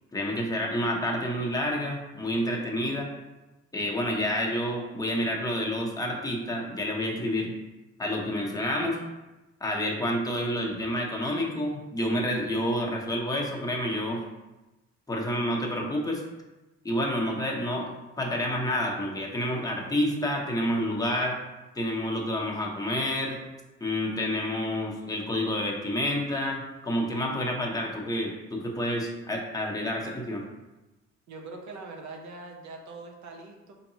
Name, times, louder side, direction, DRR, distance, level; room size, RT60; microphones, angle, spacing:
voice 1, 0.1-3.1 3.7-7.5 8.0-9.0 9.6-14.2 15.1-16.2 16.8-21.4 21.7-23.4 23.8-30.4, equal, 10° left, -1 dB, 0.8 m, -29 dB
voice 2, 31.3-33.7, right 3 dB, 65° right, 2 dB, 0.8 m, -42 dB
4.5 x 2.8 x 2.8 m, 1.0 s
cardioid pair, 90°, 30 cm